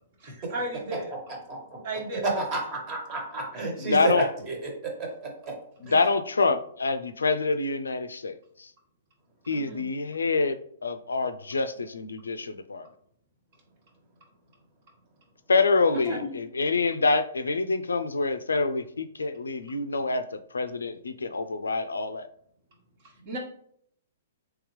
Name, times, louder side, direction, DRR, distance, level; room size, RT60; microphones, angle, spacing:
voice 1, 0.2-1.1 1.8-2.6 9.5-9.9 10.1-10.3 15.9-16.3 23.0-23.4, right 2 dB, 50° right, 0 dB, 1.3 m, -36 dB
voice 2, 2.5-4.7 5.0-5.5 5.9-6.0 16.1-16.3, right 2 dB, 35° right, 1 dB, 1.4 m, -32 dB
voice 3, 3.8-4.3 5.8-8.7 9.5-12.9 15.5-20.2 20.5-22.3, left 3 dB, 85° left, 10 dB, 0.4 m, -26 dB
3.6 x 3.2 x 3.1 m, 0.65 s
hypercardioid pair, 120°, 0 cm